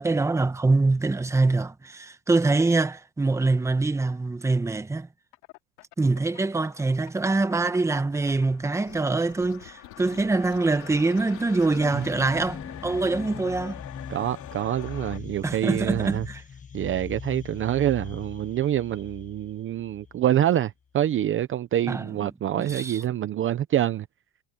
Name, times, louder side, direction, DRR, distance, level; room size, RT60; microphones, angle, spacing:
voice 1, 0.0-5.1 6.0-13.8 15.4-16.4 21.9-22.1 22.6-23.0, right 3 dB, 5° right, 1.0 m, -24 dB
sound 1, 5.3-7.1 7.5-12.1, left 23 dB, 85° left, 2.6 m, -47 dB
sound 2, 7.5-15.2, left 13 dB, 45° left, 3.5 m, -45 dB
sound 3, 11.7-20.3, left 6 dB, 20° left, 1.3 m, -40 dB
voice 2, 14.1-16.3 16.7-24.1, right 12 dB, 30° right, 0.7 m, -26 dB
cardioid pair, 150°, 40 cm